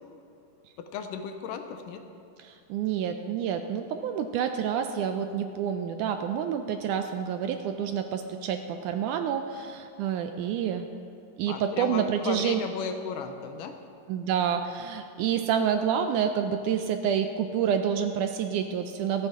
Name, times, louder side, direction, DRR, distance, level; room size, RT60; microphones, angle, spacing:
voice 1, 0.8-2.0 11.5-13.7, left 6 dB, 75° left, 7 dB, 2.3 m, -35 dB
voice 2, 2.4-10.9 11.4-12.6 14.1-19.3, right 8 dB, 80° right, 7 dB, 1.9 m, -28 dB
26.0 x 9.1 x 3.7 m, 2.6 s
omnidirectional pair, 4.0 m